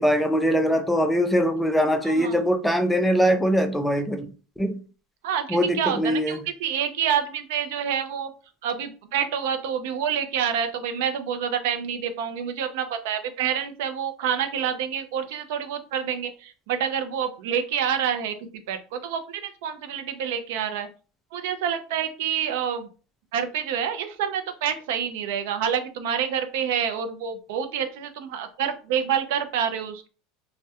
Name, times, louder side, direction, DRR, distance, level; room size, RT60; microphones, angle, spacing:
voice 1, 0.0-4.3 4.6-4.8 5.5-6.4, equal, 5° left, 5 dB, 0.3 m, -22 dB
voice 2, 2.0-2.5 5.2-8.3 8.6-18.3 18.7-20.9 21.3-22.9 23.3-30.1, right 8 dB, 75° right, 9 dB, 0.4 m, -27 dB
2.2 x 2.1 x 2.7 m, 0.36 s
supercardioid pair, 130°, 0 cm